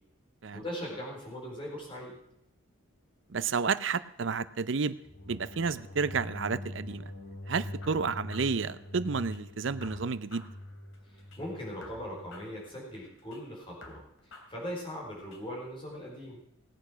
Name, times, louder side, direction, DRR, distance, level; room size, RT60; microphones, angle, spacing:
voice 1, 0.5-2.2 11.1-16.4, equal, 25° left, -3 dB, 4.4 m, -40 dB
voice 2, 3.3-5.0 5.3-7.0 7.5-10.5, right 5 dB, 60° right, 15 dB, 0.6 m, -31 dB
sound 1, 5.1-12.3, left 1 dB, 55° left, 2.7 m, -43 dB
sound 2, 7.8-9.4 9.8-11.4 11.8-13.4 13.8-15.4, left 2 dB, 70° left, 2.9 m, -52 dB
18.5 x 8.3 x 6.2 m, 0.80 s
head